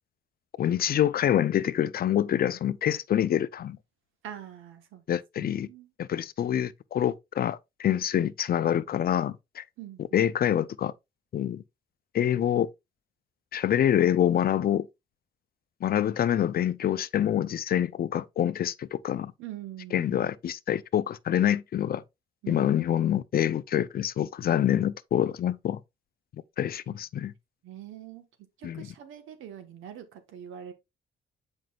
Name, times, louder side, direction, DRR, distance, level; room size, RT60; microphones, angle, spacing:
voice 1, 0.6-3.8 5.1-5.7 6.0-9.6 10.1-10.9 11.3-11.6 12.1-12.7 13.5-14.9 15.8-19.3 19.9-22.0 22.5-25.8 26.6-27.3 28.6-28.9, left 10 dB, 50° left, 0.5 m, -26 dB
voice 2, 4.2-5.0 5.4-5.9 9.8-10.2 19.4-20.3 22.4-22.9 26.9-27.0 27.6-28.2 28.6-30.7, right 10 dB, 85° right, 1.3 m, -44 dB
7.6 x 5.3 x 2.4 m
cardioid pair, 90°, 20 cm